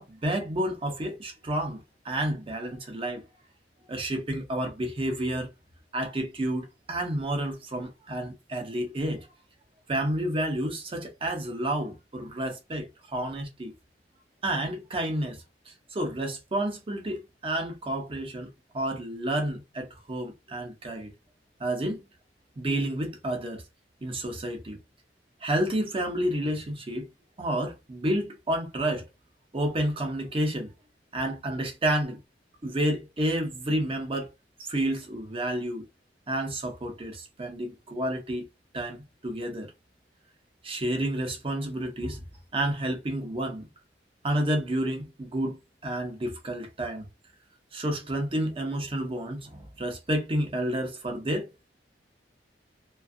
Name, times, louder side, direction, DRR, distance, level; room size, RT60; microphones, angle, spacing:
voice 1, 0.0-3.2 3.9-5.5 5.9-9.3 9.9-13.7 14.4-18.5 18.7-21.1 21.6-22.0 22.6-23.6 24.0-24.8 25.4-27.1 27.4-29.1 29.5-30.7 31.1-32.2 32.6-34.3 34.6-35.9 36.3-38.5 38.7-39.0 39.2-39.7 40.6-42.2 42.5-43.7 44.2-45.6 45.8-47.1 47.7-51.5, right 1 dB, 30° right, 0.6 m, -30 dB
2.4 x 2.2 x 2.5 m
head